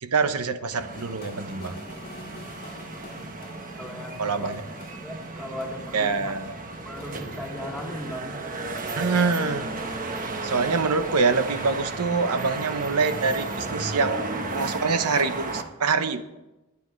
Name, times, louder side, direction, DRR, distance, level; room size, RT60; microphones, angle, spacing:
voice 1, 0.0-1.7 4.2-4.6 5.9-6.5 9.0-9.7 10.4-14.3 14.5-16.2, right 4 dB, 90° right, 9 dB, 1.0 m, -25 dB
sound 1, 0.7-15.6, right 3 dB, 40° right, 1.2 m, -34 dB
sound 2, 0.9-8.6, left 2 dB, 45° left, 1.6 m, -48 dB
voice 2, 3.7-4.6 5.0-6.3 6.8-8.5, left 1 dB, ahead, -1 dB, 2.8 m, -37 dB
20.5 x 9.8 x 3.3 m, 1.0 s
head